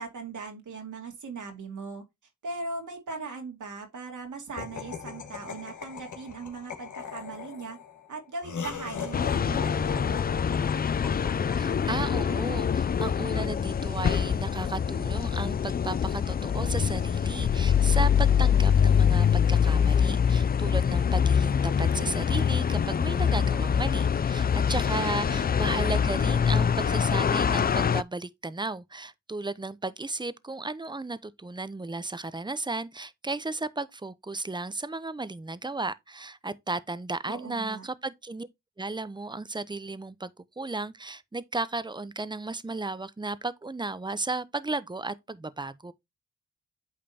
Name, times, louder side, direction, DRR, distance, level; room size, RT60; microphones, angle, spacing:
voice 1, 0.0-2.0 2.4-7.8 8.1-10.2 24.9-25.5 37.3-37.9, right 4 dB, 75° right, 2.4 m, -39 dB
Laughter, 4.6-12.9, left 6 dB, 70° left, 1.6 m, -40 dB
sound 1, 9.1-28.0, left 7 dB, 30° left, 0.4 m, -24 dB
voice 2, 11.6-38.5 38.8-40.3 40.6-45.9, right 3 dB, 15° right, 0.7 m, -34 dB
8.7 x 5.0 x 2.9 m
cardioid pair, 50°, 31 cm